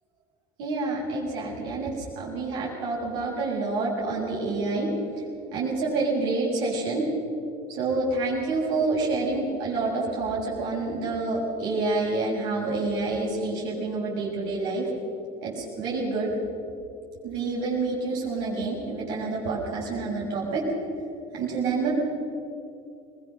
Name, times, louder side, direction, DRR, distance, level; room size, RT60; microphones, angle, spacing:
voice 1, 0.6-4.9 5.5-7.1 7.7-14.9 15.4-16.3 17.2-20.6 21.3-21.9, right 3 dB, 70° right, -5 dB, 6.9 m, -28 dB
22.0 x 19.5 x 6.6 m, 2.6 s
supercardioid pair, 90°, 18 cm